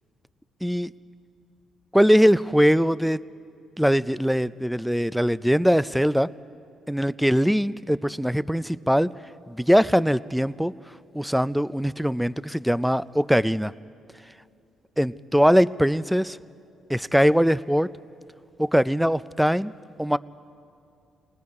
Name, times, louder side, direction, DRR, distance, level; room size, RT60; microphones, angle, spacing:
voice 1, 0.6-0.9 1.9-3.2 3.8-6.3 6.9-9.1 9.5-10.7 11.1-13.7 15.0-16.4 16.9-17.9 18.6-19.7 20.0-20.2, equal, ahead, 16 dB, 0.4 m, -21 dB
28.0 x 19.5 x 4.8 m, 2.5 s
cardioid pair, 90°, 0 cm